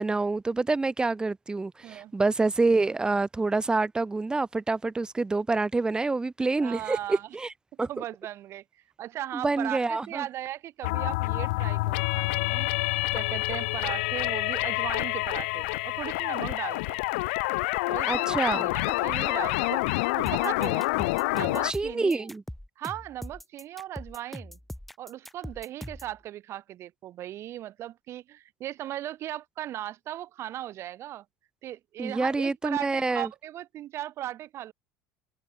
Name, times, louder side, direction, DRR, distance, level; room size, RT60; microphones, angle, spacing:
voice 1, 0.0-7.5 7.8-8.0 9.3-10.2 18.1-18.7 21.6-22.4 32.0-33.3, right 3 dB, 15° right, 3.3 m, -27 dB
voice 2, 6.6-7.3 7.8-8.6 9.0-12.7 13.1-17.0 17.9-19.8 20.2-20.9 21.3-22.3 22.8-24.6 25.0-31.2 31.6-34.7, right 13 dB, 50° right, 3.1 m, -37 dB
sound 1, 10.8-21.7, left 24 dB, 85° left, 1.4 m, -27 dB
sound 2, 20.3-26.1, left 1 dB, ahead, 5.3 m, -41 dB
open air
supercardioid pair, 115°, 6 cm